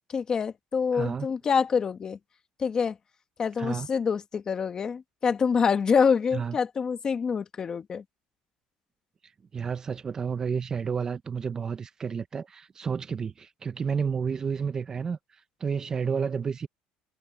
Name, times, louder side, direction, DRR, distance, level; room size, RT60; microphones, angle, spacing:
voice 1, 0.1-2.2 2.6-3.0 3.4-8.0, left 6 dB, 25° left, 1.2 m, -26 dB
voice 2, 0.9-1.3 3.6-3.9 6.3-6.6 9.5-15.2 15.6-16.7, right 6 dB, 25° right, 0.7 m, -30 dB
cardioid pair, 150°, 3 cm